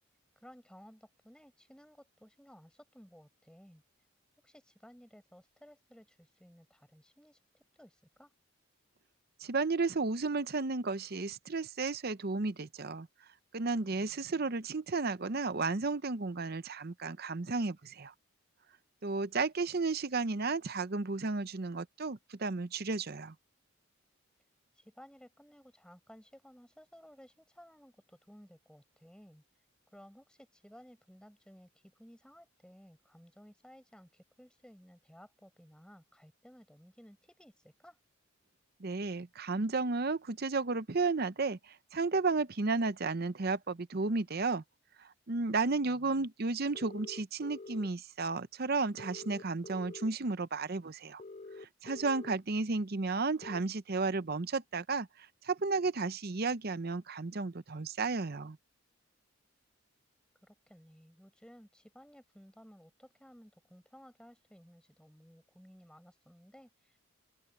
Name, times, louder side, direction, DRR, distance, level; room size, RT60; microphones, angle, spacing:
voice 1, 0.4-3.8 4.4-8.3 13.8-14.5 24.7-29.4 29.9-38.0 45.9-46.3 60.4-67.0, equal, 5° left, 6.6 m, -57 dB
voice 2, 9.4-13.1 13.5-18.1 19.0-23.3 38.8-44.6 45.0-51.2 51.6-58.6, right 3 dB, 45° right, 0.7 m, -33 dB
sound 1, 46.7-47.9 49.0-50.1 51.2-52.3 53.4-53.6, left 3 dB, 30° left, 0.4 m, -47 dB
open air
head